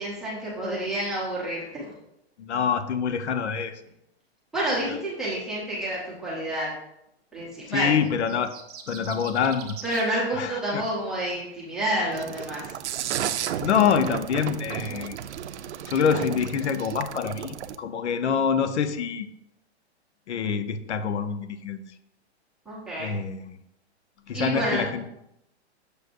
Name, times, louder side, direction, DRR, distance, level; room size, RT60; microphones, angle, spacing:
voice 1, 0.0-1.9 4.5-6.7 7.3-7.9 9.8-12.7 22.7-23.2 24.3-24.9, right 1 dB, ahead, -8 dB, 0.6 m, -29 dB
voice 2, 2.4-3.8 7.7-8.5 8.9-9.7 10.3-10.8 13.6-15.2 15.9-19.3 20.3-21.8 23.0-23.6 24.3-25.0, left 7 dB, 85° left, 11 dB, 0.7 m, -26 dB
sound 1, 8.0-10.1, right 7 dB, 35° right, 0.7 m, -42 dB
sound 2, 12.1-17.8, right 10 dB, 85° right, 0.6 m, -33 dB
6.7 x 6.4 x 2.5 m, 0.81 s
hypercardioid pair, 170°, 33 cm